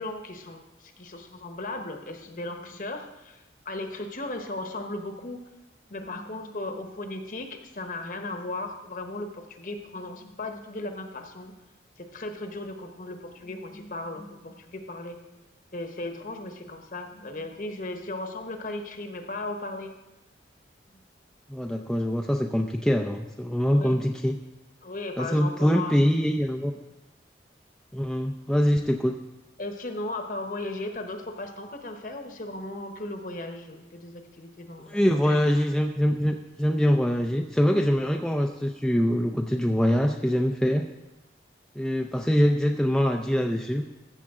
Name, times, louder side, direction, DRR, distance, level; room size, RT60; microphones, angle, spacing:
voice 1, 0.0-5.4 5.9-11.6 12.0-15.2 15.7-20.0 23.7-24.0 24.8-25.9 29.6-35.4, left 2 dB, 45° left, 5 dB, 1.0 m, -36 dB
voice 2, 21.5-24.4 25.2-26.7 27.9-29.1 34.9-40.9 41.8-43.8, equal, 5° left, 2 dB, 0.4 m, -24 dB
15.0 x 7.0 x 3.7 m, 1.0 s
head